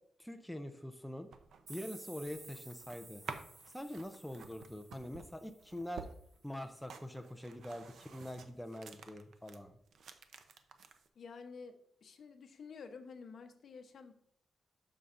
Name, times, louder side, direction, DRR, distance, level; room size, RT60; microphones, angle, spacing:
voice 1, 0.2-1.3 1.7-3.2 3.7-6.1 6.4-9.8, left 1 dB, ahead, 6 dB, 0.5 m, -44 dB
sound 1, 1.1-9.6 9.9-11.1, right 6 dB, 70° right, 0.6 m, -51 dB
sound 2, 1.7-6.3, right 2 dB, 50° right, 3.6 m, -55 dB
voice 2, 11.1-14.1, left 5 dB, 55° left, 7 dB, 0.9 m, -50 dB
12.5 x 5.4 x 2.5 m, 0.68 s
wide cardioid pair, 150°, 0 cm